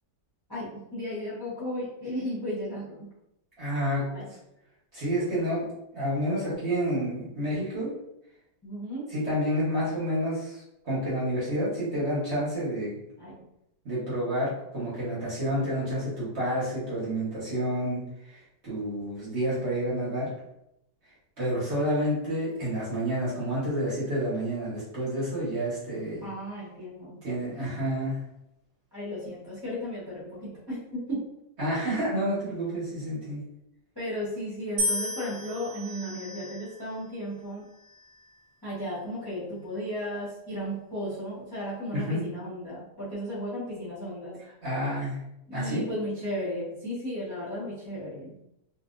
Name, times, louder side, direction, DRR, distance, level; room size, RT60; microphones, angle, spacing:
voice 1, 0.5-3.1 4.1-4.2 8.6-9.1 13.2-13.3 26.2-27.2 28.9-31.2 34.0-37.6 38.6-44.3 45.5-48.3, equal, 20° left, -10 dB, 0.8 m, -35 dB
voice 2, 3.6-4.1 4.9-7.9 9.1-13.0 13.8-20.3 21.4-26.3 27.2-28.2 31.6-33.4 41.9-42.2 44.6-45.2 45.5-45.8, equal, 45° right, -8 dB, 1.2 m, -29 dB
sound 1, 34.8-37.0 37.8-38.3, equal, 65° right, 0.6 m, -33 dB
3.0 x 2.7 x 2.5 m, 0.81 s
omnidirectional pair, 1.9 m